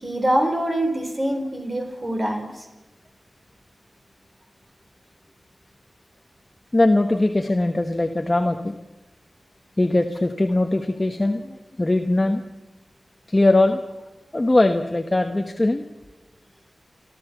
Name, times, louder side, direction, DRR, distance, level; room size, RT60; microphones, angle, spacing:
voice 1, 0.0-2.5, right 1 dB, 30° right, 4 dB, 4.0 m, -24 dB
voice 2, 6.7-8.7 9.8-12.4 13.3-13.8 14.3-15.8, left 2 dB, 25° left, 5 dB, 1.2 m, -20 dB
29.0 x 13.0 x 7.1 m, 1.1 s
wide cardioid pair, 65°, 0 cm